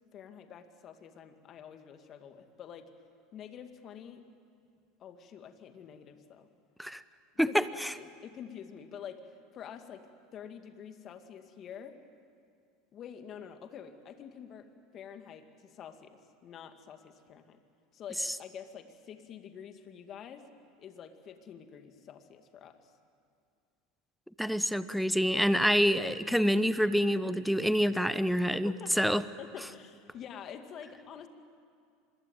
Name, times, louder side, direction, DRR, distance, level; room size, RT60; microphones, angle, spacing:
voice 1, 0.1-2.9 3.3-4.2 5.0-6.5 7.4-12.0 12.9-17.6 17.9-20.5 20.8-22.9 28.5-31.3, left 8 dB, 45° left, 7 dB, 2.4 m, -47 dB
voice 2, 7.4-7.9 24.4-29.2, equal, ahead, 14 dB, 0.9 m, -27 dB
25.5 x 22.0 x 9.2 m, 2.3 s
hypercardioid pair, 85°, 0 cm